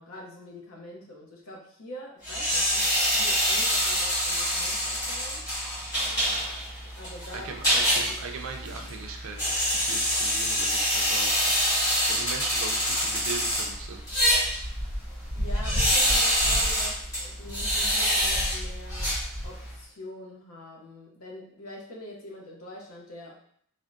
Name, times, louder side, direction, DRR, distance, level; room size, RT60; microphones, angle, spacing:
voice 1, 0.0-5.4 6.9-7.5 15.3-19.1 19.4-23.4, left 1 dB, 70° left, -1 dB, 0.7 m, -44 dB
sound 1, 2.2-19.7, equal, 15° left, 1.2 m, -26 dB
voice 2, 7.3-11.6 12.1-14.0, right 4 dB, 65° right, 3 dB, 0.4 m, -39 dB
3.4 x 2.1 x 2.4 m, 0.64 s
head